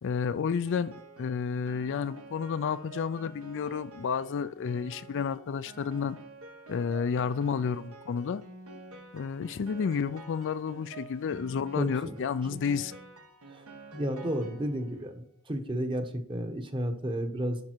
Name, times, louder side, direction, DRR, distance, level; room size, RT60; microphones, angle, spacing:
voice 1, 0.0-6.2 6.7-8.4 9.1-12.9, left 6 dB, 55° left, 0.4 m, -31 dB
Piano, 0.7-15.1, right 3 dB, 70° right, 1.5 m, -49 dB
voice 2, 11.8-12.1 13.5-13.6 13.9-17.6, equal, 25° right, 1.1 m, -32 dB
11.0 x 5.4 x 4.5 m
head